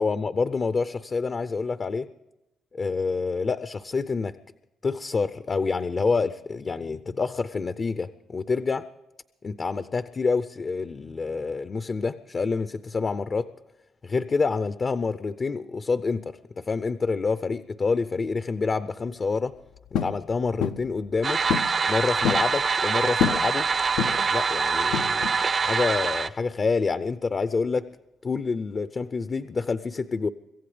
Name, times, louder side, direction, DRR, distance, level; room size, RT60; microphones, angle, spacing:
voice 1, 0.0-2.1 2.7-4.4 4.8-8.9 9.4-13.5 14.0-19.5 20.0-21.4 21.9-23.7 24.3-25.3 25.6-27.9 28.2-30.3, left 4 dB, 40° left, 12 dB, 0.5 m, -27 dB
sound 1, 19.9-20.2 20.6-20.9 21.5-21.8 22.0-22.5 23.2-23.5 24.0-24.3 24.9-25.4, left 8 dB, 85° left, 0.5 m, -27 dB
sound 2, 21.2-26.3, right 5 dB, 45° right, 0.6 m, -24 dB
25.5 x 15.0 x 3.3 m, 0.96 s
cardioid pair, 90°, 0 cm